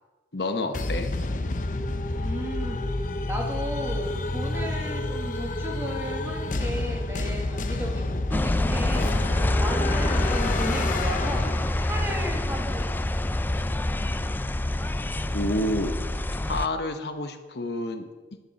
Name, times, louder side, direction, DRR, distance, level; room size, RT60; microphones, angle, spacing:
voice 1, 0.3-1.1 15.3-15.9 16.5-18.1, left 1 dB, 65° left, 7 dB, 1.0 m, -29 dB
sound 1, 0.7-12.1, left 2 dB, 45° left, 0.7 m, -29 dB
voice 2, 2.2-11.5 11.8-13.2, equal, 15° right, 1 dB, 1.7 m, -35 dB
sound 2, 8.3-16.7, left 1 dB, 10° left, 0.3 m, -26 dB
10.5 x 6.8 x 8.1 m, 1.3 s
head